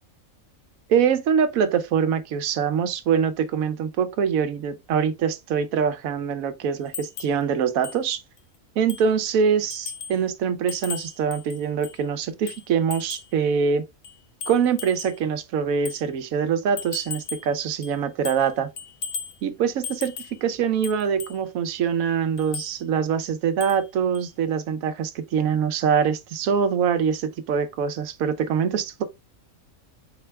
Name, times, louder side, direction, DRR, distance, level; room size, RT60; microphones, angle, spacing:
voice 1, 0.9-8.2 8.8-13.8 14.5-18.7 19.4-29.0, right 7 dB, 85° right, 1.1 m, -24 dB
sound 1, 6.9-7.4 7.8-8.0 8.4-8.5 8.9-9.2 9.7-10.2 10.7-12.0 12.5-13.3 14.0-15.2 15.9-16.0 16.8-17.5 17.8-18.5 18.8-19.4 19.8-20.4 20.8-21.4 22.4-22.7 23.6-23.9 24.1-24.3, left 6 dB, 80° left, 0.4 m, -37 dB
4.3 x 3.4 x 3.2 m
omnidirectional pair, 1.4 m